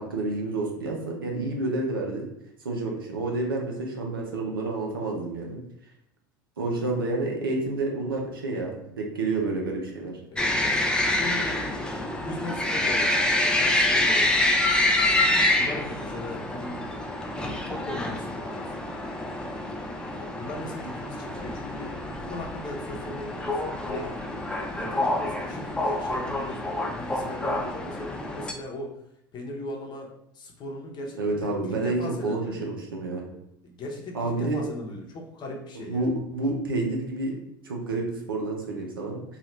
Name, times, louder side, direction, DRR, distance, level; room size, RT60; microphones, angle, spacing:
voice 1, 0.0-2.3 2.6-5.6 6.6-10.2 31.2-33.3 34.1-34.6 35.8-37.4 37.6-39.2, right 2 dB, 85° right, 0 dB, 0.6 m, -29 dB
voice 2, 10.3-14.5 14.9-17.0 17.3-18.9 20.1-29.0 29.3-32.7 33.6-36.1, left 2 dB, 40° left, 0 dB, 0.8 m, -39 dB
sound 1, 10.4-28.5, left 1 dB, 10° left, 0.4 m, -27 dB
2.8 x 2.4 x 3.1 m, 0.77 s
hypercardioid pair, 75°, 11 cm